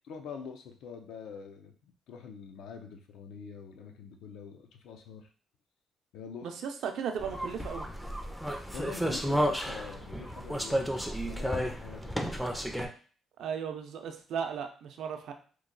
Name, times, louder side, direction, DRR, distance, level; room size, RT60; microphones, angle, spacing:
voice 1, 0.1-5.3 6.1-6.5 8.7-10.9 11.3-12.1, left 6 dB, 85° left, 4 dB, 0.5 m, -45 dB
voice 2, 6.4-7.9 13.4-15.3, right 7 dB, 70° right, 5 dB, 0.5 m, -36 dB
sound 1, 7.2-12.9, equal, ahead, 0.4 m, -32 dB
3.0 x 2.2 x 3.8 m, 0.41 s
cardioid pair, 140°, 0 cm